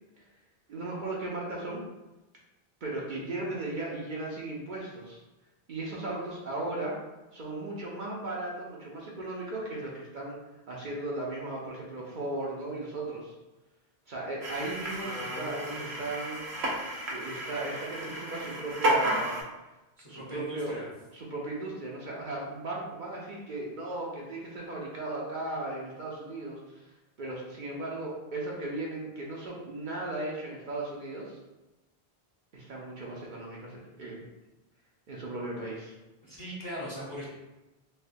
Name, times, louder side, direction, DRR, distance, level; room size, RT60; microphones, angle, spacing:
voice 1, 0.7-1.8 2.8-5.2 5.7-6.9 7.3-10.4 10.7-13.3 14.1-16.5 17.1-19.4 20.1-20.8 21.1-31.4 32.5-34.3 35.1-35.9, right 2 dB, 55° right, -3 dB, 0.7 m, -36 dB
sound 1, 14.4-19.4, right 1 dB, 85° right, 1.0 m, -32 dB
voice 2, 15.0-15.9 20.0-20.9 36.2-37.2, equal, 25° left, -7 dB, 0.7 m, -40 dB
4.2 x 2.1 x 2.6 m, 1.0 s
omnidirectional pair, 1.0 m